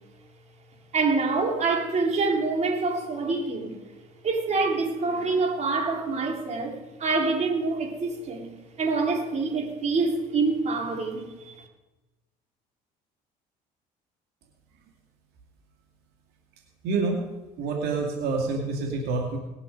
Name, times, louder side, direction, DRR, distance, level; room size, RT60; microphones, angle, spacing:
voice 1, 0.9-3.7 4.2-8.5 8.8-11.6, right 3 dB, 40° right, 3.4 m, -26 dB
voice 2, 16.8-17.2 17.6-19.4, right 3 dB, 75° right, 2.3 m, -27 dB
19.0 x 10.5 x 5.2 m
supercardioid pair, 90°, 17 cm